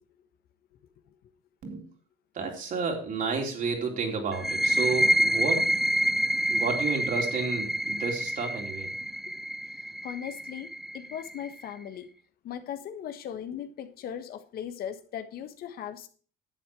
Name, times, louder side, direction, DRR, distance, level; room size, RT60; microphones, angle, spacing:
voice 1, 2.3-5.7 6.5-8.9, right 4 dB, 50° right, 3.8 m, -31 dB
sound 1, 4.3-11.7, right 1 dB, ahead, 0.4 m, -27 dB
voice 2, 10.0-12.1 12.4-16.1, left 9 dB, 60° left, 1.4 m, -38 dB
11.5 x 8.2 x 4.7 m
cardioid pair, 105°, 17 cm